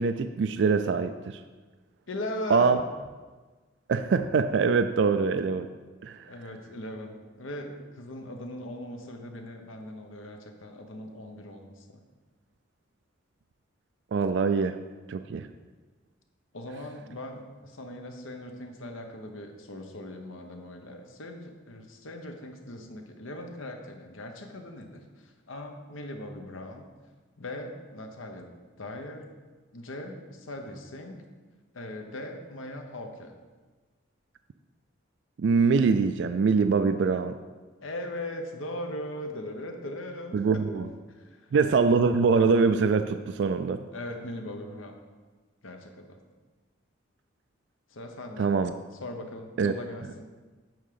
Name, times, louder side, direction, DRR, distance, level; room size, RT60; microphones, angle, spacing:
voice 1, 0.0-1.4 2.5-2.8 3.9-5.7 6.0-6.3 14.1-14.8 15.1-15.5 35.4-37.3 40.3-40.9 41.5-43.8 48.4-48.7 49.6-49.7, right 5 dB, 60° right, 9 dB, 0.3 m, -23 dB
voice 2, 2.1-2.8 6.3-12.0 16.5-26.9 27.4-28.5 28.8-29.3 29.7-31.2 31.7-33.3 37.8-41.5 43.9-45.0 45.6-46.2 47.9-48.5 49.0-50.2, left 1 dB, 80° left, 4 dB, 1.0 m, -39 dB
9.0 x 3.7 x 6.8 m, 1.3 s
head